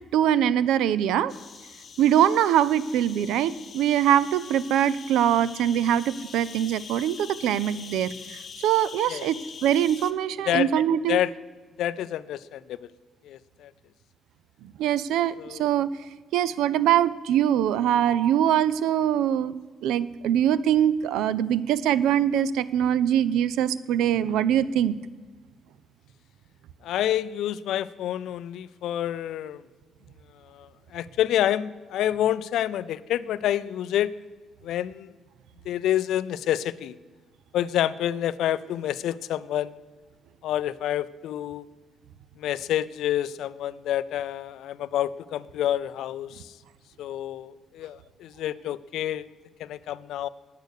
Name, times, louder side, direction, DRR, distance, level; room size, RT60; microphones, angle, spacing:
voice 1, 0.1-1.3 2.0-8.1 8.6-11.2 14.8-15.9 16.3-19.6 19.8-25.0, right 10 dB, 85° right, 17 dB, 0.4 m, -23 dB
sound 1, 1.3-10.1, left 6 dB, 50° left, 0.8 m, -43 dB
voice 2, 11.8-12.8 13.3-13.7 15.4-15.6 26.8-29.6 30.5-34.1 34.6-35.1 35.7-36.9 37.5-39.8 40.4-41.6 42.4-46.5 47.0-49.3 49.6-50.3, left 11 dB, 80° left, 17 dB, 0.4 m, -28 dB
9.1 x 8.3 x 6.6 m, 1.4 s
cardioid pair, 80°, 0 cm